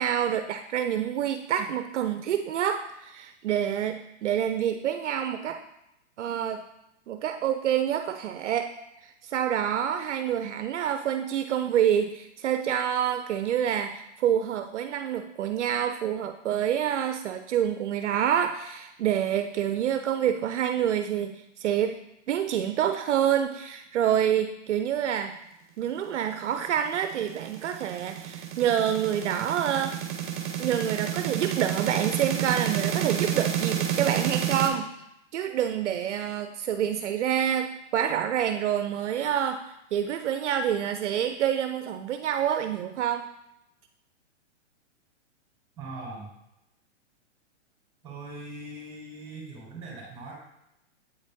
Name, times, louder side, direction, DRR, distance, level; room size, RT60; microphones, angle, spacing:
voice 1, 0.0-5.6 6.2-6.6 7.1-8.7 9.2-22.0 22.3-25.3 25.8-30.0 30.6-34.9 35.3-43.3, right 9 dB, 70° right, 7 dB, 0.6 m, -27 dB
sound 1, 26.6-34.7, right 9 dB, 40° right, 0.9 m, -30 dB
voice 2, 45.8-46.3 48.0-50.3, right 2 dB, 15° right, -3 dB, 2.5 m, -40 dB
8.1 x 4.1 x 3.6 m, 0.83 s
hypercardioid pair, 150°, 36 cm